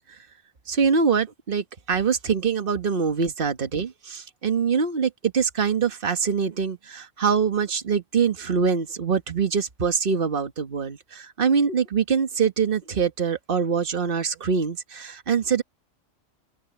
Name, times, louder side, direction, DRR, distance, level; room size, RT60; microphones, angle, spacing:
voice 1, 0.7-15.6, right 6 dB, 45° right, 1.6 m, -24 dB
open air
omnidirectional pair, 1.4 m